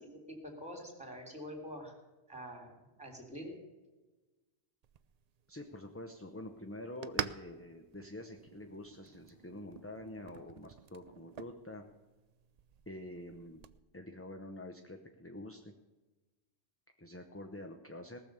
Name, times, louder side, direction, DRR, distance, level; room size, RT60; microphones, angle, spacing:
voice 1, 0.0-1.9 2.3-3.6, equal, 5° right, 2 dB, 3.1 m, -46 dB
sound 1, 4.8-13.8, right 8 dB, 55° right, 0.5 m, -47 dB
voice 2, 5.5-11.8 12.9-13.6 13.9-15.7 17.0-18.2, left 1 dB, 15° left, 4 dB, 0.7 m, -47 dB
18.5 x 6.9 x 6.8 m, 1.2 s
omnidirectional pair, 1.1 m